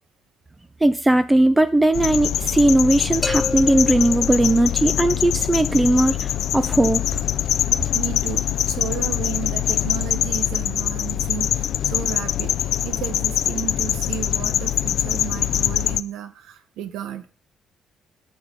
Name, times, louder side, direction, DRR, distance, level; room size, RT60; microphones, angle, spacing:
voice 1, 0.8-7.0, right 1 dB, 15° right, 11 dB, 0.5 m, -18 dB
sound 1, 1.9-16.0, left 11 dB, 75° left, 0.4 m, -23 dB
sound 2, 3.2-5.1, left 2 dB, 20° left, 0.9 m, -31 dB
voice 2, 7.9-17.3, right 10 dB, 90° right, 12 dB, 0.9 m, -33 dB
6.4 x 5.9 x 5.2 m, 0.38 s
cardioid pair, 90°, 0 cm